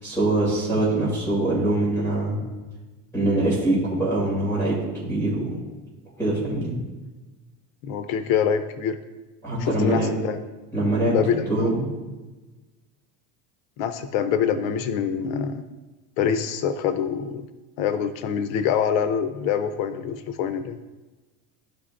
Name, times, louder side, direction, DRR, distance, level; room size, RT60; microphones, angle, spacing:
voice 1, 0.0-2.4 3.1-5.6 6.2-6.8 9.4-10.1 10.7-11.9, right 2 dB, 5° left, -8 dB, 2.4 m, -23 dB
voice 2, 7.8-9.0 9.6-10.4 11.0-11.7 13.8-15.6 16.2-17.5 17.8-20.8, left 7 dB, 85° left, 10 dB, 0.7 m, -25 dB
13.0 x 5.0 x 2.5 m, 1.2 s
cardioid pair, 165°, 40 cm